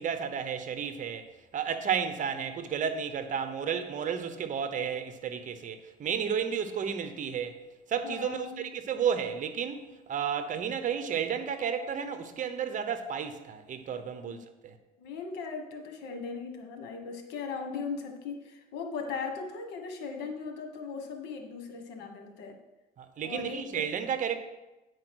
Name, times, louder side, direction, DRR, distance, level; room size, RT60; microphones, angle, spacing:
voice 1, 0.0-7.6 7.9-14.8 23.0-24.4, right 7 dB, 50° right, 1.0 m, -32 dB
voice 2, 8.0-8.7 14.2-14.4 15.0-22.6 23.2-23.8, left 5 dB, 90° left, 1.4 m, -38 dB
9.4 x 4.8 x 6.2 m
cardioid pair, 110°, 17 cm